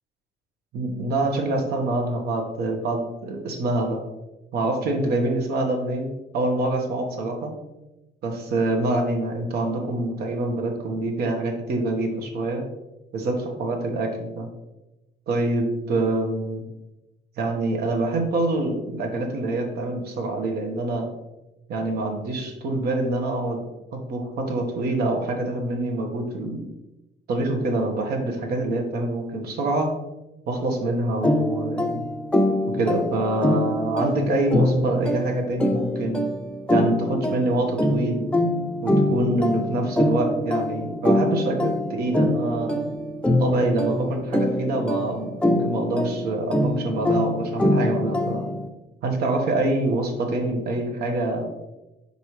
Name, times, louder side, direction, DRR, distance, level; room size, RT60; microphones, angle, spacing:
voice 1, 0.7-4.0 4.5-7.5 8.2-12.6 13.1-14.5 15.3-16.6 17.4-21.1 21.7-23.6 23.9-26.6 27.3-29.9 30.5-32.0 32.7-36.3 36.7-38.3 38.8-42.9 43.4-45.3 45.6-48.5 49.0-51.5, right 2 dB, 70° right, 3 dB, 1.3 m, -25 dB
sound 1, 31.2-48.7, left 1 dB, 5° left, 0.5 m, -24 dB
5.5 x 5.3 x 3.2 m, 1.0 s
cardioid pair, 110°, 17 cm